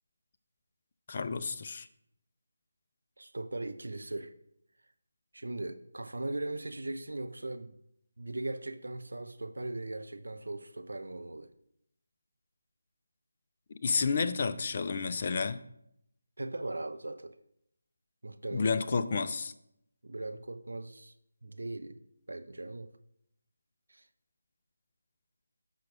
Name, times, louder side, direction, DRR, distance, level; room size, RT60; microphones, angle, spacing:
voice 1, 1.1-1.9 13.8-15.6 18.5-19.5, left 4 dB, 35° left, 0.4 m, -30 dB
voice 2, 3.2-4.3 5.3-7.8 8.2-11.5 16.4-17.3 18.2-18.8 20.0-21.1 21.4-22.0 22.3-22.9 23.9-24.0, right 2 dB, 65° right, 0.6 m, -39 dB
13.5 x 6.0 x 2.5 m
figure-of-eight pair, 155°, 0 cm